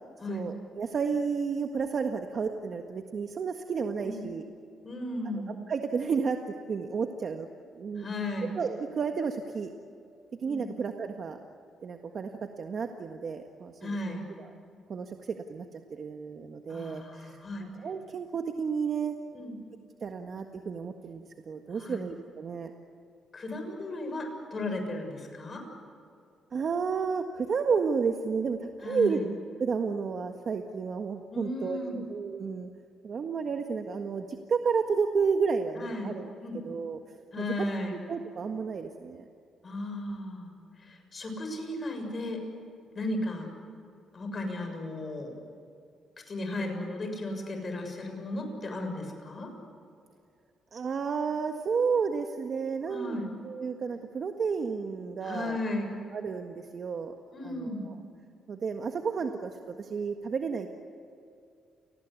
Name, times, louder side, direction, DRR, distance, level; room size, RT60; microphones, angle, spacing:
voice 1, 0.3-4.5 5.3-6.4 6.7-7.5 7.8-8.1 8.5-9.7 10.4-11.4 11.8-12.3 12.6-14.5 14.9-15.2 15.5-19.1 20.0-22.7 26.5-29.2 29.6-32.7 33.0-36.3 36.6-37.0 37.4-37.6 37.9-39.2 50.7-53.2 53.4-55.6 56.1-57.1 57.4-57.9 58.5-60.7, right 5 dB, 45° right, 4 dB, 1.6 m, -31 dB
voice 2, 4.8-5.5 8.0-8.5 10.4-10.7 13.8-14.3 16.7-17.6 19.3-19.6 21.7-22.0 23.3-25.6 28.8-29.2 31.3-32.0 35.8-36.2 36.4-36.6 37.3-38.0 39.6-40.5 40.8-42.4 43.0-43.5 44.1-45.3 46.3-49.5 52.9-53.3 55.2-55.9 57.3-57.9, left 1 dB, 35° left, 4 dB, 6.9 m, -35 dB
30.0 x 19.5 x 8.3 m, 2.5 s
cardioid pair, 105°, 0 cm